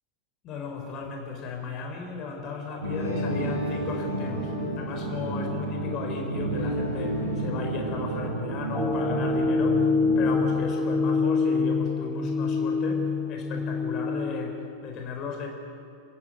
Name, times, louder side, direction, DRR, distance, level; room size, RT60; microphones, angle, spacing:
voice 1, 0.4-15.5, left 4 dB, 35° left, 3 dB, 4.4 m, -35 dB
sound 1, 2.8-10.4, right 1 dB, 75° right, 7.7 m, -31 dB
sound 2, 8.7-14.2, left 4 dB, 15° left, 3.8 m, -25 dB
28.5 x 15.5 x 9.1 m, 2.5 s
figure-of-eight pair, 90°, 0 cm